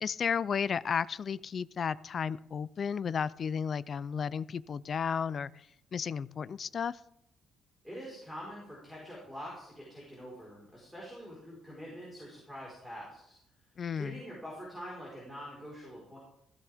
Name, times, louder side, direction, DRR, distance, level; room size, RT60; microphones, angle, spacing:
voice 1, 0.0-5.5 5.9-7.0 13.8-14.2, left 7 dB, 35° left, 18 dB, 0.4 m, -33 dB
voice 2, 7.8-13.4 13.9-16.2, equal, ahead, -5 dB, 4.5 m, -45 dB
15.5 x 15.5 x 3.5 m, 0.75 s
cardioid pair, 175°, 0 cm